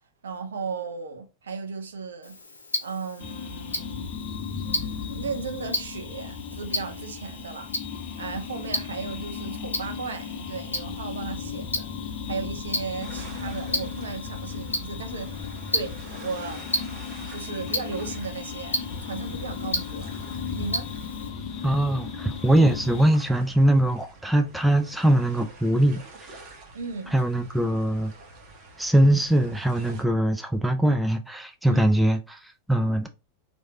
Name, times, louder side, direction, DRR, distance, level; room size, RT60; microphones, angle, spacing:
voice 1, 0.2-2.4 2.8-4.1 4.6-7.7 8.2-11.9 12.2-16.6 17.2-20.1 20.5-20.9 26.7-27.1 31.7-31.9, right 4 dB, 70° right, 0.6 m, -35 dB
Tick-tock, 2.2-21.3, left 1 dB, 75° left, 0.7 m, -35 dB
sound 1, 3.2-23.1, left 6 dB, 40° left, 0.6 m, -36 dB
sound 2, 13.0-30.0, right 2 dB, 40° right, 1.0 m, -48 dB
voice 2, 21.6-26.3 27.1-28.1 28.8-33.1, right 1 dB, 5° right, 0.4 m, -22 dB
3.1 x 2.6 x 3.2 m
figure-of-eight pair, 90°, 0 cm